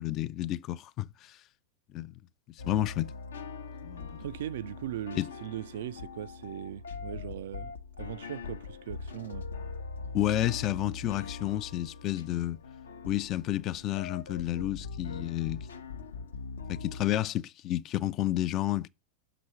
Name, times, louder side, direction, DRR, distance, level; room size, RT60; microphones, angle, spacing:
voice 1, 0.0-1.4 1.9-2.1 2.6-3.1 3.8-4.1 5.2-5.3 10.1-12.6 13.0-15.7 16.7-18.9, left 13 dB, 35° left, 0.4 m, -30 dB
sound 1, 2.6-17.0, left 4 dB, 70° left, 0.7 m, -42 dB
voice 2, 4.2-9.5, right 12 dB, 55° right, 0.3 m, -39 dB
6.1 x 4.9 x 5.6 m
figure-of-eight pair, 90°, 0 cm